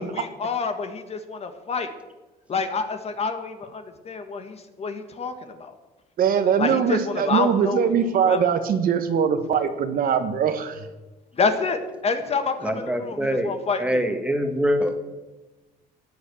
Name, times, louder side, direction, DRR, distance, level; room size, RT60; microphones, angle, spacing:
voice 1, 0.0-1.9 2.5-5.7 6.6-7.9 8.3-8.5 11.4-14.0, left 4 dB, 40° left, 8 dB, 1.6 m, -28 dB
voice 2, 6.2-10.9, right 7 dB, 60° right, 8 dB, 1.4 m, -22 dB
voice 3, 12.6-13.5 13.8-15.0, equal, 5° right, 6 dB, 2.0 m, -24 dB
14.5 x 9.3 x 7.0 m, 1.1 s
cardioid pair, 110°, 17 cm